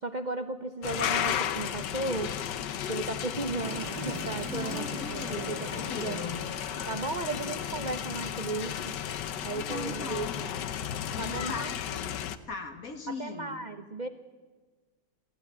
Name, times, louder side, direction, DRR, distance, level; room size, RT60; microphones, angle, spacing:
voice 1, 0.0-2.3 2.9-5.7 5.9-6.2 6.9-9.0 9.4-10.5 11.2-11.7 13.1-14.1, right 3 dB, 40° right, 8 dB, 0.6 m, -35 dB
sound 1, 0.8-12.4, left 9 dB, 75° left, 1.5 m, -34 dB
sound 2, 3.6-10.3, right 6 dB, 90° right, 1.9 m, -45 dB
voice 2, 4.4-6.4 9.5-10.4 11.1-13.7, left 4 dB, 50° left, 6 dB, 2.2 m, -40 dB
27.5 x 15.0 x 9.8 m, 1.4 s
omnidirectional pair, 1.9 m